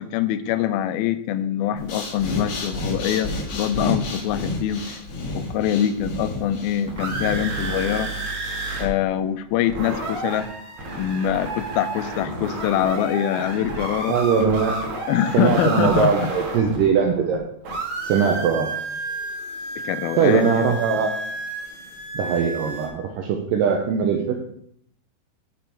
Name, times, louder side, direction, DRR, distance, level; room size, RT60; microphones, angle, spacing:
voice 1, 0.0-4.9 5.3-8.1 8.8-10.5 11.0-14.2 15.1-16.3 19.8-20.5, left 10 dB, 85° left, 12 dB, 2.5 m, -24 dB
Breathing, 1.8-7.8, left 2 dB, 45° left, 2.5 m, -30 dB
sound 1, 6.6-8.9 9.1-9.2 9.5-17.4 17.6-22.9, right 2 dB, 55° right, 2.9 m, -31 dB
voice 2, 14.1-14.7 15.3-17.4 18.1-18.7 20.2-21.1 22.2-24.3, right 6 dB, 75° right, 2 dB, 2.3 m, -20 dB
9.2 x 7.1 x 4.5 m, 0.70 s
omnidirectional pair, 4.3 m